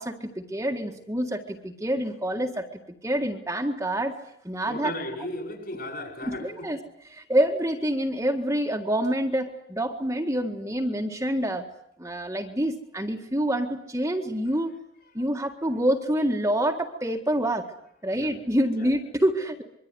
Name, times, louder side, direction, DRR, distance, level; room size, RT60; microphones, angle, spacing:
voice 1, 0.0-2.7 3.0-4.2 4.4-4.9 6.3-6.8 7.1-11.7 12.0-14.7 15.1-17.7 18.0-19.6, right 1 dB, 15° right, 2 dB, 1.8 m, -27 dB
voice 2, 4.6-6.7 18.1-18.3 18.7-18.9, left 1 dB, 50° left, 6 dB, 7.4 m, -35 dB
25.0 x 23.5 x 9.8 m, 0.72 s
head